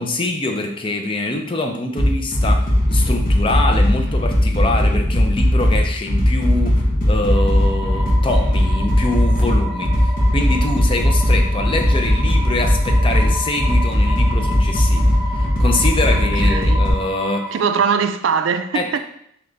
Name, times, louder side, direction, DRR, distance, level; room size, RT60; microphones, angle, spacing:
voice 1, 0.0-17.5 18.7-19.0, left 2 dB, 30° left, 0.5 m, -24 dB
sound 1, 2.0-16.9, left 1 dB, 45° left, 0.9 m, -17 dB
sound 2, 7.3-17.5, equal, 45° right, 1.0 m, -31 dB
voice 2, 16.1-16.8 17.5-19.0, right 6 dB, 85° right, 0.3 m, -21 dB
3.8 x 3.0 x 3.3 m
head